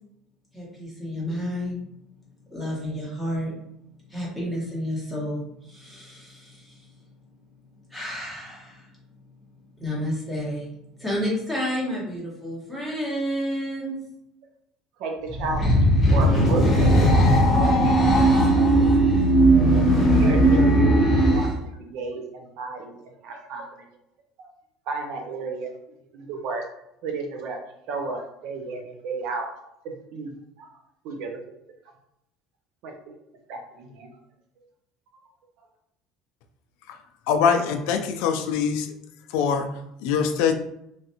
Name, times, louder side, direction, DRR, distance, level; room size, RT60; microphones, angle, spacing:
voice 1, 0.5-1.9 2.5-3.5 4.1-6.9 7.9-8.9 9.8-14.0, equal, 5° right, -6 dB, 1.1 m, -30 dB
sound 1, 15.3-21.5, right 1 dB, 20° left, 1.0 m, -18 dB
voice 2, 15.4-15.7 16.1-18.3 18.5-18.7 19.0-19.1 20.1-21.5 21.8-23.0 23.2-23.6 24.9-25.7 26.1-26.6 27.0-27.6 27.9-29.4 30.1-30.3 31.0-31.4 32.8-32.9 33.5-34.1, right 4 dB, 60° right, 2 dB, 0.6 m, -32 dB
voice 3, 37.3-38.9 39.3-39.7 40.0-40.5, left 6 dB, 75° left, 5 dB, 0.3 m, -22 dB
3.2 x 2.5 x 2.8 m, 0.79 s
cardioid pair, 160°, 0 cm